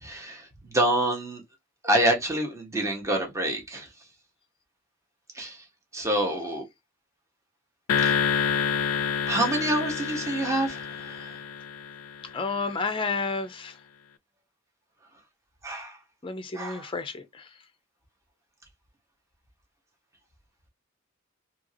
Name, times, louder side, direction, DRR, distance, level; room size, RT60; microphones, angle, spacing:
voice 1, 0.0-1.4 1.8-3.9 5.3-5.6 5.9-6.6 8.0-8.2 9.3-11.4 15.6-16.0 16.5-16.9, right 1 dB, 15° right, 0.9 m, -27 dB
sound 1, 7.9-12.4, left 7 dB, 90° left, 0.4 m, -28 dB
voice 2, 12.3-13.7 16.2-17.5, left 4 dB, 25° left, 0.5 m, -31 dB
2.8 x 2.6 x 2.5 m
head